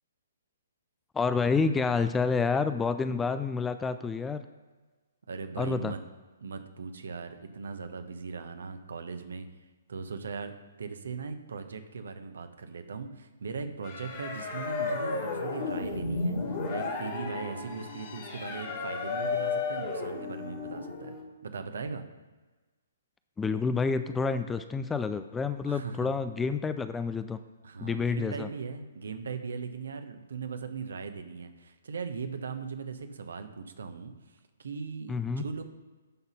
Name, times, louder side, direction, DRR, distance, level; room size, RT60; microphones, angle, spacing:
voice 1, 1.1-4.5 5.6-5.9 23.4-27.4 27.8-28.5 35.1-35.4, left 4 dB, 10° left, 11 dB, 0.3 m, -29 dB
voice 2, 5.3-6.0 6.4-9.5 9.9-10.5 10.8-21.1 21.4-22.0 25.7-26.1 27.6-35.6, right 5 dB, 65° right, 8 dB, 1.0 m, -39 dB
sound 1, 13.8-21.2, left 4 dB, 40° left, 2.2 m, -33 dB
11.0 x 4.1 x 5.7 m, 1.3 s
figure-of-eight pair, 130°, 0 cm